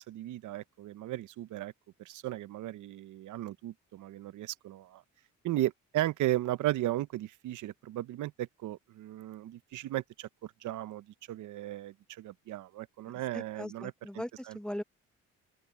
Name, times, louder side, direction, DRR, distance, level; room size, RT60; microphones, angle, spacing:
voice 1, 0.1-1.7 2.0-5.0 5.4-13.9 14.5-14.6, right 14 dB, 75° right, 0.8 m, -35 dB
voice 2, 13.1-14.8, equal, 5° left, 1.0 m, -40 dB
open air
cardioid pair, 90°, 30 cm